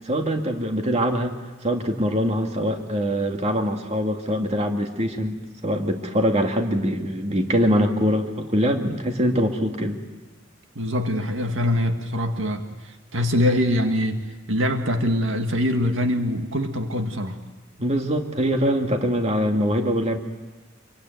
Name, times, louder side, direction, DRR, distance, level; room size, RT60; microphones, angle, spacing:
voice 1, 0.1-1.3 1.6-10.0 17.8-20.2, equal, 35° right, 4 dB, 2.3 m, -23 dB
voice 2, 10.8-12.6 13.1-14.2 14.5-17.4, left 1 dB, 70° right, 5 dB, 2.0 m, -23 dB
27.0 x 23.5 x 9.4 m, 1.2 s
head